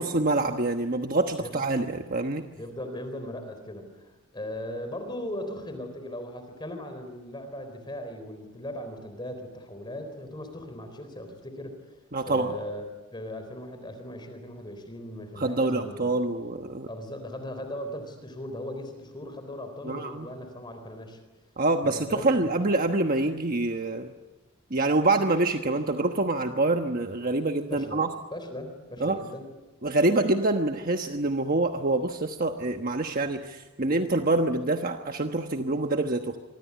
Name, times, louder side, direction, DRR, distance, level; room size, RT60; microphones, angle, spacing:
voice 1, 0.0-2.4 12.1-12.5 15.4-16.9 19.8-20.3 21.6-24.1 24.7-28.1 29.0-29.2 29.8-36.4, right 2 dB, 40° right, 5 dB, 1.2 m, -26 dB
voice 2, 2.5-12.8 13.1-16.1 16.9-21.2 21.8-22.7 27.7-28.0 28.3-29.5, left 1 dB, 20° left, 7 dB, 3.9 m, -38 dB
25.5 x 24.5 x 9.6 m, 1.2 s
head